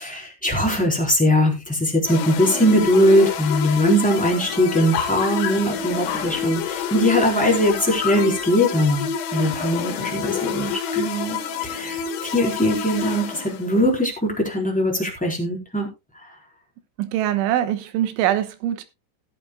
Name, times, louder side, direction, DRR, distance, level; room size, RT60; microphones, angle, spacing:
voice 1, 0.0-11.4 11.6-15.9, equal, ahead, 3.0 m, -21 dB
sound 1, 2.1-13.9, left 6 dB, 85° left, 4.3 m, -28 dB
sound 2, 2.7-3.1 3.4-3.5 3.7-6.9 7.4-8.5, left 8 dB, 65° left, 4.6 m, -32 dB
voice 2, 17.0-18.8, right 12 dB, 80° right, 3.4 m, -23 dB
18.0 x 8.7 x 2.2 m
omnidirectional pair, 5.7 m